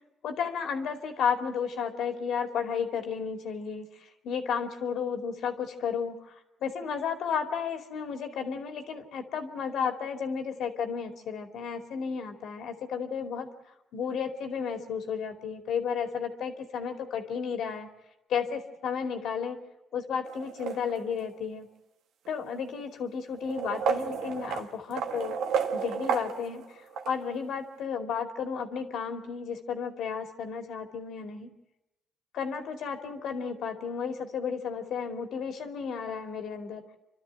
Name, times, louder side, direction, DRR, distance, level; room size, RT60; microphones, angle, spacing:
voice 1, 0.2-3.9 4.2-6.3 6.6-13.5 13.9-17.9 18.3-19.6 19.9-21.7 22.3-25.4 25.7-26.6 27.1-31.6 32.3-36.8, left 6 dB, 75° left, 6 dB, 2.6 m, -33 dB
sound 1, 20.2-21.3 22.2-22.3 23.3-27.2, right 7 dB, 85° right, 1.6 m, -32 dB
28.0 x 12.5 x 9.0 m, 0.91 s
cardioid pair, 90°, 0 cm